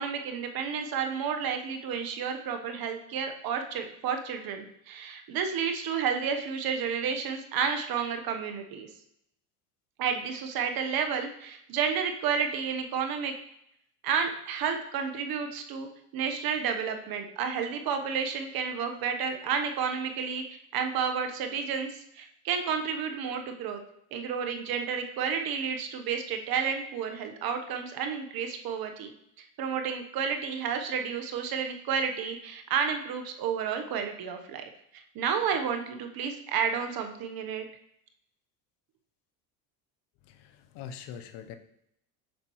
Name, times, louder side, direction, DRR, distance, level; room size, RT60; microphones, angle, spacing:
voice 1, 0.0-8.9 10.0-13.3 14.0-15.9 16.1-20.4 20.7-23.8 24.1-29.1 29.6-34.6 35.1-37.7, right 6 dB, 50° right, 6 dB, 1.1 m, -31 dB
voice 2, 40.3-41.5, left 8 dB, 60° left, 9 dB, 0.8 m, -43 dB
7.3 x 5.9 x 3.1 m, 0.75 s
supercardioid pair, 90°, 45 cm